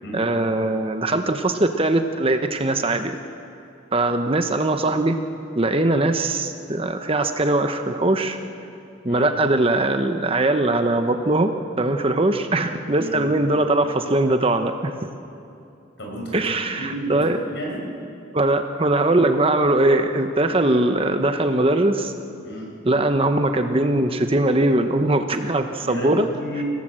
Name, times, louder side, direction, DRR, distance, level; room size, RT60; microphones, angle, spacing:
voice 1, 0.1-3.2 3.9-5.2 5.5-8.4 9.0-14.9 16.3-17.4 18.3-22.1 22.9-26.3, right 2 dB, 30° right, 7 dB, 0.9 m, -21 dB
voice 2, 12.9-13.3 16.0-16.5 16.8-17.2 17.5-17.8 22.4-22.7 25.8-26.6, right 1 dB, 60° left, -1 dB, 6.1 m, -32 dB
27.0 x 17.0 x 7.6 m, 2.6 s
head